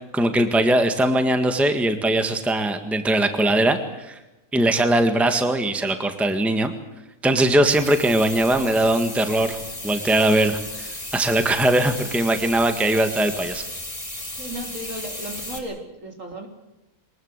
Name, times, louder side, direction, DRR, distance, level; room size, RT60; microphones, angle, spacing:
voice 1, 0.1-4.2 4.5-6.7 7.2-9.6 9.8-13.6, right 1 dB, ahead, 7 dB, 1.6 m, -20 dB
sound 1, 7.6-15.6, left 1 dB, 20° left, 4.5 m, -35 dB
voice 2, 14.4-16.5, right 1 dB, 60° right, 3 dB, 4.0 m, -35 dB
24.0 x 20.5 x 8.2 m, 0.96 s
omnidirectional pair, 1.5 m